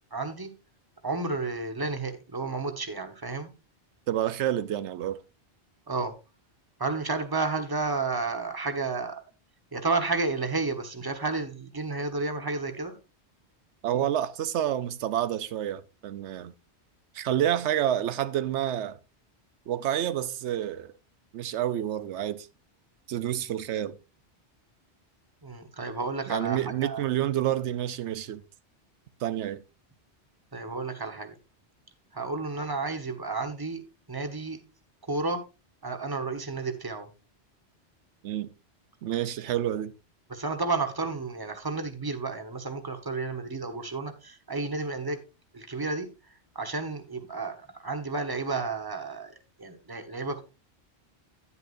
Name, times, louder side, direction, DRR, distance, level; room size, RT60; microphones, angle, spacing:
voice 1, 0.1-0.5 1.0-3.5 5.9-6.1 6.8-9.2 9.7-13.0 25.4-27.0 30.5-31.3 32.1-33.8 34.1-34.6 35.1-35.4 35.8-37.1 40.3-45.2 45.5-46.1 46.5-50.4, right 3 dB, 20° right, 1.2 m, -31 dB
voice 2, 4.1-5.2 13.8-16.5 17.1-19.0 19.7-20.9 21.3-22.5 23.1-24.0 26.3-28.4 29.2-29.6 38.2-38.5 39.0-39.9, right 11 dB, 90° right, 0.9 m, -29 dB
10.0 x 9.7 x 2.6 m
omnidirectional pair, 1.2 m